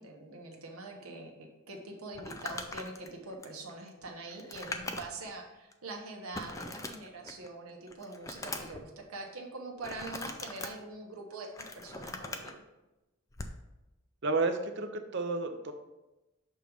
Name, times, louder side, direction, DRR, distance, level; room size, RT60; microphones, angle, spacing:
voice 1, 0.0-1.3 1.7-12.6, right 2 dB, 85° right, 0 dB, 1.1 m, -44 dB
Crumpling crinkling, 2.1-5.3 5.7-5.8 6.3-7.5 7.9-8.8 9.8-10.7 11.3-12.5 13.3-13.6, left 2 dB, 15° left, 0.4 m, -41 dB
voice 2, 14.2-15.7, right 3 dB, 55° right, 6 dB, 0.6 m, -31 dB
6.6 x 3.1 x 5.0 m, 1.0 s
head